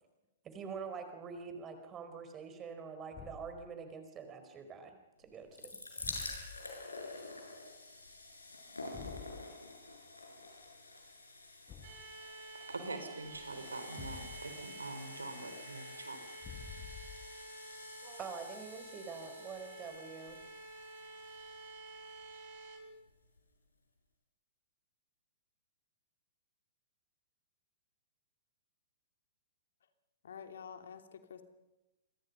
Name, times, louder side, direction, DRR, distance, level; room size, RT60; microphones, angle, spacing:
voice 1, 0.4-6.0 18.0-20.4, right 5 dB, 20° right, 7 dB, 4.8 m, -46 dB
Thump thud, 3.1-3.6 6.0-6.7 8.9-9.4 11.7-12.2 14.0-14.6 16.4-17.4, left 7 dB, 25° left, 7.1 m, -49 dB
sound 1, 5.3-22.3 23.1-23.2 23.4-23.5, left 2 dB, 85° left, 6.8 m, -49 dB
sound 2, 11.8-22.8, right 2 dB, 45° right, 6.9 m, -51 dB
voice 2, 12.7-16.2, right 2 dB, 80° right, 7 dB, 4.7 m, -44 dB
voice 3, 30.2-31.4, left 7 dB, 65° left, 7 dB, 2.9 m, -48 dB
29.5 x 24.5 x 5.6 m, 1.0 s
figure-of-eight pair, 110°, 0 cm